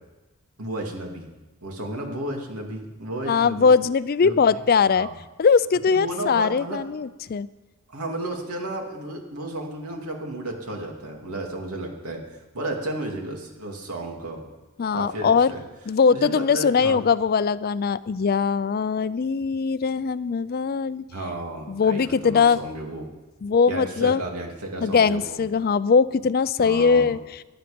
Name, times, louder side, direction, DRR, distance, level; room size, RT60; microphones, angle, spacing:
voice 1, 0.6-1.3 1.6-3.7 4.2-4.3 4.9-5.2 5.9-6.8 7.9-14.4 14.9-15.6 16.1-17.0 21.1-23.1 23.6-25.4 26.6-27.1, right 1 dB, 85° right, 1 dB, 2.7 m, -33 dB
voice 2, 3.3-5.1 5.4-7.5 14.8-15.5 15.9-21.0 21.7-22.6 23.4-24.2 24.8-27.2, left 5 dB, 45° left, 17 dB, 0.4 m, -21 dB
17.5 x 11.5 x 5.2 m, 1.1 s
head